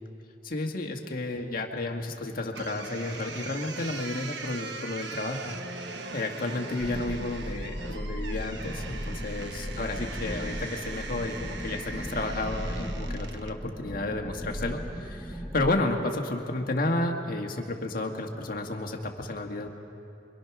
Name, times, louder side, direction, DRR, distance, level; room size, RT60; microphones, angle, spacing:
voice 1, 0.4-19.7, left 2 dB, 50° left, 3 dB, 1.7 m, -32 dB
sound 1, 2.5-13.6, right 4 dB, 65° right, 1.2 m, -41 dB
sound 2, 6.8-15.7, equal, 5° right, 0.8 m, -36 dB
26.0 x 23.5 x 6.0 m, 2.8 s
head